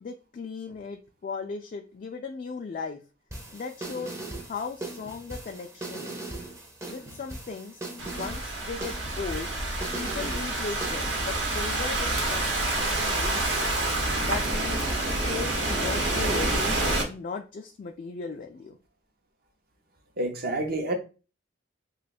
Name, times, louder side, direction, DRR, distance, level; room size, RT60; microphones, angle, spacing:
voice 1, 0.0-3.0 3.5-4.2 4.5-6.3 6.9-7.8 8.1-13.7 14.2-16.8 17.0-18.8, left 4 dB, 45° left, 0.3 m, -37 dB
sound 1, 3.3-11.3, right 2 dB, 15° right, 0.6 m, -39 dB
Thunderstorm / Rain, 8.0-17.0, right 2 dB, 70° right, 1.0 m, -28 dB
voice 2, 20.2-20.9, right 2 dB, 50° right, 0.7 m, -28 dB
2.9 x 2.3 x 4.1 m
head